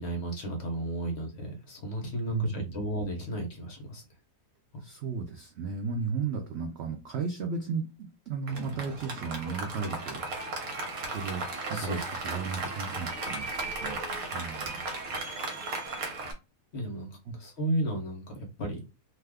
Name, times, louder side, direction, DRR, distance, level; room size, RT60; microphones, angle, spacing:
voice 1, 0.0-4.0 11.7-12.0 16.7-17.1 17.4-18.8, right 1 dB, 55° left, 3 dB, 0.8 m, -33 dB
voice 2, 2.3-2.8 4.8-10.4 10.9-13.5 13.7-14.0 14.3-14.9 17.3-17.4, right 5 dB, 85° right, 3 dB, 0.5 m, -35 dB
Applause, 8.5-16.3, right 3 dB, 65° right, 1.2 m, -36 dB
2.7 x 2.3 x 3.3 m, 0.29 s
omnidirectional pair, 1.7 m